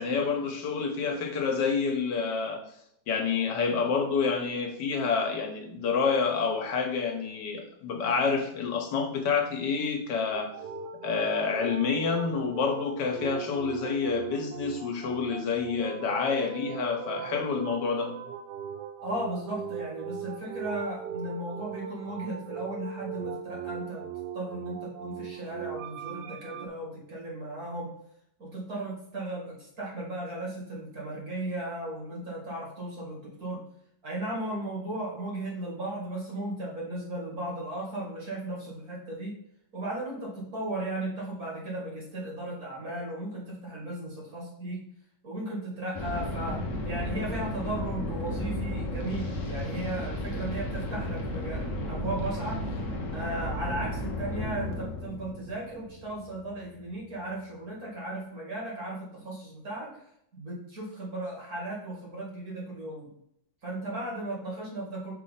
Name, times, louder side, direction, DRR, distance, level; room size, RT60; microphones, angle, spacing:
voice 1, 0.0-2.6 3.1-10.5 11.0-18.1, left 5 dB, 85° left, 3 dB, 1.7 m, -28 dB
sound 1, 10.3-26.7, right 8 dB, 80° right, 1.2 m, -39 dB
voice 2, 19.0-24.0 24.3-27.9 28.4-33.6 34.0-39.3 39.7-44.8 45.2-52.6 53.1-60.0 60.3-63.1 63.6-65.1, right 1 dB, 60° right, -4 dB, 2.7 m, -36 dB
sound 2, 45.9-56.7, left 1 dB, 50° left, 1.3 m, -34 dB
5.8 x 3.3 x 5.7 m, 0.74 s
omnidirectional pair, 1.8 m